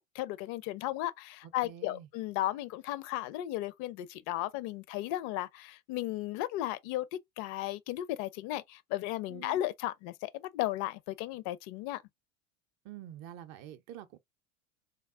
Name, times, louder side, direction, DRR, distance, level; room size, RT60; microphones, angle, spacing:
voice 1, 0.1-7.1 7.4-12.0, left 15 dB, 45° left, 0.5 m, -35 dB
voice 2, 1.4-2.1 9.3-9.6 12.8-14.2, right 11 dB, 45° right, 0.6 m, -47 dB
3.5 x 2.0 x 2.4 m
hypercardioid pair, 90°, 39 cm